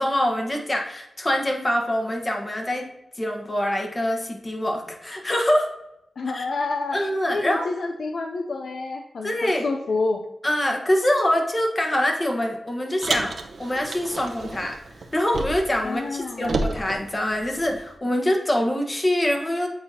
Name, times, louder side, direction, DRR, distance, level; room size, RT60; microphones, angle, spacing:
voice 1, 0.0-2.9 3.2-5.7 6.3-6.4 6.9-7.6 9.2-9.6 10.4-14.8 15.1-19.7, left 1 dB, 30° left, 2 dB, 1.3 m, -24 dB
voice 2, 6.2-7.0 7.3-10.2 15.8-16.6, left 3 dB, 80° left, 3 dB, 0.5 m, -28 dB
Car, 13.0-15.8 16.1-17.9, right 3 dB, 75° right, 0.7 m, -31 dB
8.7 x 4.1 x 2.8 m, 0.86 s
cardioid pair, 50°, 0 cm